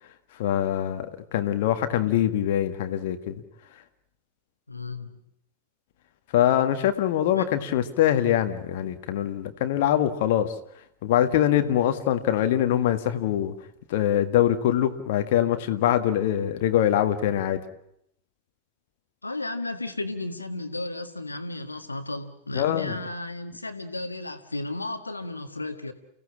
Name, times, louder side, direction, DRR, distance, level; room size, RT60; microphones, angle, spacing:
voice 1, 0.4-3.4 6.3-10.5 11.0-13.5 13.9-17.6 22.5-23.0, left 11 dB, 50° left, 8 dB, 1.7 m, -23 dB
voice 2, 4.7-5.2 7.3-7.5 19.2-25.9, left 2 dB, 80° left, 8 dB, 1.8 m, -34 dB
29.5 x 16.5 x 8.6 m, 0.76 s
figure-of-eight pair, 90°, 0 cm